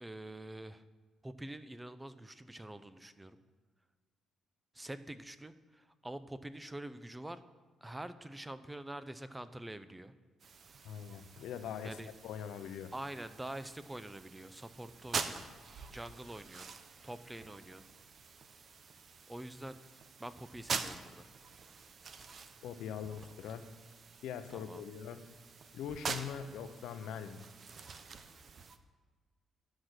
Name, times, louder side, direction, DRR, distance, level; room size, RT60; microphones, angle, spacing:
voice 1, 0.0-0.8 1.2-3.4 4.7-7.4 7.8-10.1 11.8-12.1 12.9-15.4 15.9-16.7 17.0-17.9 19.3-19.8 20.2-21.3 24.5-24.8, right 1 dB, 10° right, 12 dB, 0.6 m, -46 dB
sound 1, 10.4-28.8, right 5 dB, 50° right, 0.7 m, -46 dB
voice 2, 10.8-12.9 22.6-23.7 24.2-25.2 25.7-27.4, left 8 dB, 85° left, 10 dB, 0.7 m, -42 dB
11.5 x 6.0 x 6.5 m, 1.5 s
cardioid pair, 90°, 0 cm